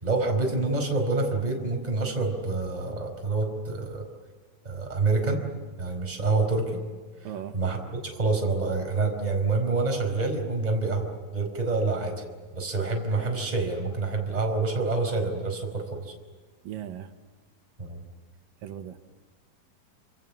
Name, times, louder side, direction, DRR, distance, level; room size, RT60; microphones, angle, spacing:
voice 1, 0.0-4.0 4.6-5.4 5.8-6.8 7.5-7.8 8.0-12.1 12.5-16.1 17.8-18.0, right 3 dB, 10° right, 2 dB, 4.7 m, -27 dB
voice 2, 7.2-7.6 16.6-17.1 18.6-19.1, right 10 dB, 80° right, 7 dB, 2.8 m, -37 dB
28.5 x 27.0 x 7.3 m, 1.4 s
omnidirectional pair, 4.0 m